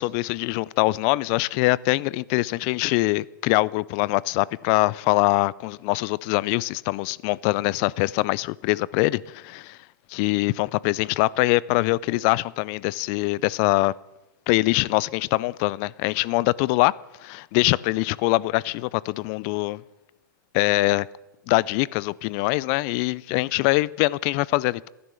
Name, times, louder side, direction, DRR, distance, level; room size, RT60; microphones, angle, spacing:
voice 1, 0.0-9.8 10.1-13.9 14.5-16.9 17.2-19.8 20.5-21.1 21.5-24.9, left 21 dB, 40° left, 0.4 m, -23 dB
14.0 x 11.0 x 6.9 m
hypercardioid pair, 130°, 11 cm